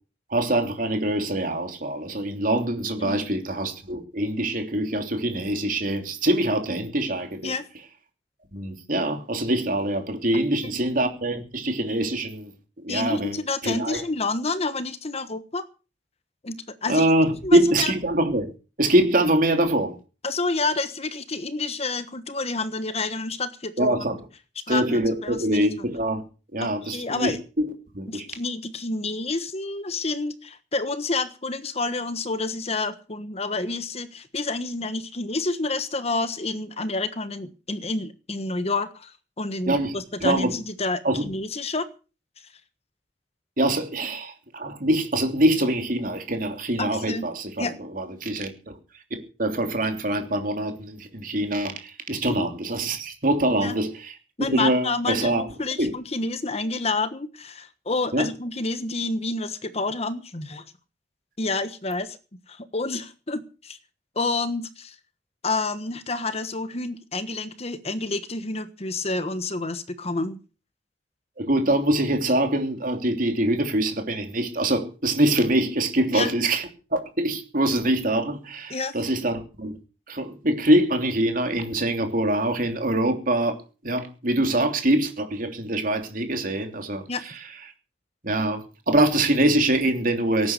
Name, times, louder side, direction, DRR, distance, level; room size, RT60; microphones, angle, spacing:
voice 1, 0.3-7.5 8.5-12.5 12.8-13.4 13.6-14.0 16.9-18.5 18.8-19.9 23.8-24.2 24.7-26.2 26.5-27.7 27.9-28.3 39.7-39.9 40.2-40.5 41.0-41.3 43.6-47.7 47.9-48.7 49.1-54.1 54.5-55.4 55.8-55.9 58.1-58.3 71.4-76.6 76.9-79.7 80.1-83.6 83.8-87.0 88.2-90.5, right 1 dB, 50° right, 3.1 m, -24 dB
voice 2, 12.9-15.6 16.4-17.0 17.4-17.9 20.2-24.1 24.7-25.7 26.6-27.4 28.1-41.9 46.8-47.3 47.6-47.8 52.3-52.5 53.5-53.8 54.4-60.6 61.4-62.2 62.5-63.8 64.1-64.9 65.4-70.4 76.1-76.3 78.7-78.9 87.1-87.2, left 3 dB, 35° left, 1.3 m, -29 dB
18.0 x 9.6 x 6.6 m
head